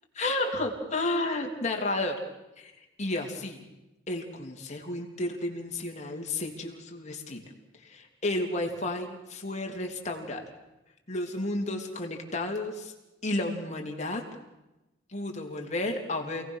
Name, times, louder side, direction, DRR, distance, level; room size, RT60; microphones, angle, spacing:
voice 1, 0.1-2.1 2.6-2.7 3.0-3.6 4.1-7.4 7.8-10.4 11.1-12.9 13.2-14.2 15.1-16.4, left 2 dB, 35° left, 1 dB, 3.3 m, -32 dB
28.0 x 18.5 x 6.5 m, 1.0 s
head